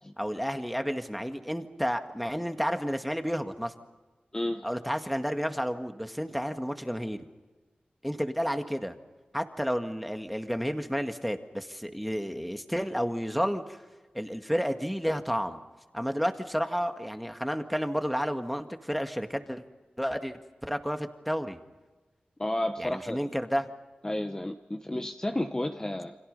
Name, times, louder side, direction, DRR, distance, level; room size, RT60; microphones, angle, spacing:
voice 1, 0.2-3.7 4.6-7.3 8.0-9.0 9.3-13.8 14.1-15.6 15.9-19.6 20.0-21.6 22.8-23.7, equal, ahead, 6 dB, 1.9 m, -31 dB
voice 2, 4.3-4.7 22.4-23.2 24.0-26.2, left 1 dB, 20° left, 6 dB, 1.1 m, -31 dB
29.5 x 26.0 x 5.5 m, 1.2 s
wide cardioid pair, 75°, 3 cm